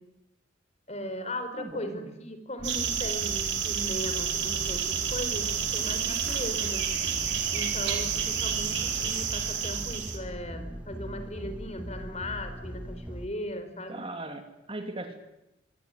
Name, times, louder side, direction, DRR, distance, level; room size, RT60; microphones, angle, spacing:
voice 1, 0.9-6.8 7.5-14.0, left 1 dB, 35° left, 8 dB, 4.6 m, -38 dB
voice 2, 1.6-2.2 13.9-15.2, right 2 dB, 30° right, 6 dB, 2.8 m, -39 dB
sound 1, 2.6-13.3, equal, 5° right, 1.4 m, -40 dB
sound 2, 2.6-10.2, right 8 dB, 65° right, 4.9 m, -30 dB
25.0 x 24.0 x 9.9 m, 0.93 s
head